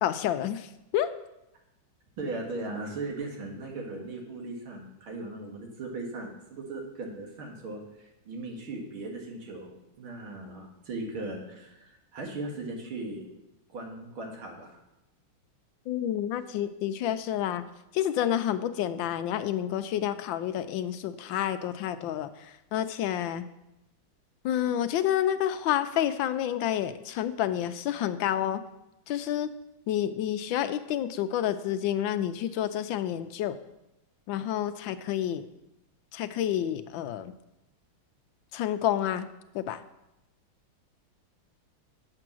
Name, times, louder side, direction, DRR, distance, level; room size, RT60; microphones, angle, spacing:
voice 1, 0.0-1.1 15.9-17.6 17.9-23.4 24.4-28.6 29.1-29.5 29.9-33.6 34.3-35.5 36.1-37.3 38.5-39.3 39.5-39.8, left 11 dB, 75° left, 11 dB, 1.2 m, -29 dB
voice 2, 2.2-13.2 13.7-14.8, right 2 dB, 90° right, 0 dB, 2.7 m, -38 dB
8.4 x 7.7 x 6.1 m, 0.91 s
omnidirectional pair, 2.2 m